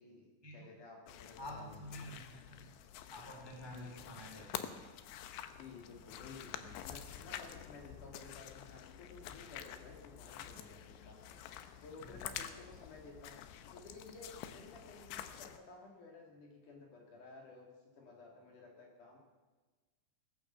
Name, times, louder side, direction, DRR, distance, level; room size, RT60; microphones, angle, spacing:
voice 1, 0.0-2.1 3.6-4.0 5.6-11.4 11.8-13.4 13.7-19.2, left 3 dB, 50° left, 1 dB, 3.1 m, -54 dB
sound 1, 1.1-15.6, left 10 dB, 80° left, 2.9 m, -48 dB
voice 2, 1.4-2.6 3.1-4.7 12.0-12.3, left 1 dB, 10° right, 0 dB, 1.7 m, -49 dB
18.5 x 10.0 x 7.4 m, 1.3 s
omnidirectional pair, 5.2 m